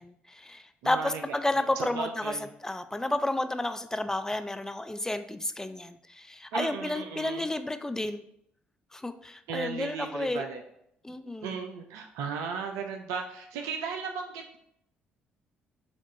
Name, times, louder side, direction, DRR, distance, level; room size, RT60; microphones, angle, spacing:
voice 1, 0.0-2.3 2.6-8.2 8.9-10.4 11.0-11.6, left 1 dB, 10° left, 9 dB, 0.4 m, -31 dB
voice 2, 0.8-2.5 6.5-7.5 9.5-10.6 11.4-14.6, right 6 dB, 70° right, 4 dB, 0.4 m, -36 dB
7.0 x 2.4 x 2.6 m, 0.73 s
figure-of-eight pair, 45°, 5 cm